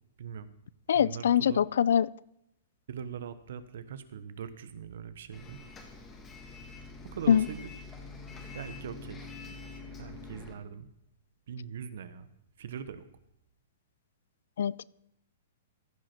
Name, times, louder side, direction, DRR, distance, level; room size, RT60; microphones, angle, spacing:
voice 1, 0.2-0.5 0.9-1.6 2.9-5.6 7.0-7.7 8.5-9.3 10.0-10.9 11.5-12.3 12.6-13.0, right 7 dB, 70° right, 13 dB, 0.9 m, -41 dB
voice 2, 0.9-2.1 7.3-7.5 14.6-14.8, left 8 dB, 75° left, 23 dB, 0.3 m, -23 dB
Bus, 5.3-10.6, left 3 dB, 15° left, 1.5 m, -46 dB
15.0 x 5.2 x 5.8 m, 0.81 s
hypercardioid pair, 150°, 0 cm